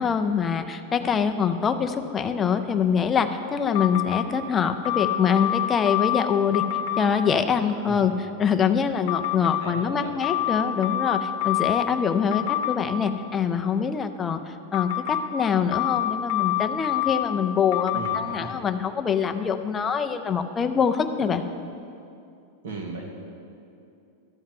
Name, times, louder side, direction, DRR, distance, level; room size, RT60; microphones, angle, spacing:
voice 1, 0.0-6.6 7.0-8.1 8.4-21.4, left 7 dB, 15° left, 7 dB, 0.4 m, -24 dB
sound 1, 3.7-4.2 4.8-6.2 6.5-7.0 9.1-9.6 10.2-11.9 12.3-12.8 14.7-15.2 15.7-17.2 17.7-18.2, left 14 dB, 55° left, 1.0 m, -26 dB
voice 2, 9.4-10.1 17.9-18.6 22.6-23.0, right 3 dB, 75° right, 1 dB, 1.7 m, -37 dB
12.5 x 4.5 x 7.5 m, 2.6 s
supercardioid pair, 175°, 0 cm